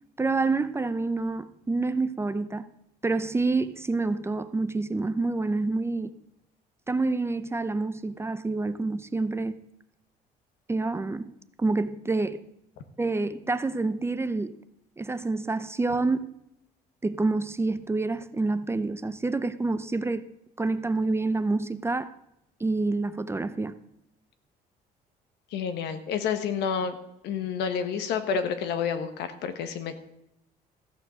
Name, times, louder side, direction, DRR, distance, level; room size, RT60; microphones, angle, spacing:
voice 1, 0.2-2.7 3.0-6.1 6.9-9.6 10.7-11.3 11.6-12.4 13.0-14.6 15.0-16.3 17.0-20.3 20.6-22.1 22.6-23.8, right 3 dB, 15° right, 0.6 m, -27 dB
voice 2, 25.5-27.0 27.2-29.9, left 7 dB, 80° left, 1.3 m, -29 dB
15.0 x 6.9 x 6.3 m
cardioid pair, 110°, 17 cm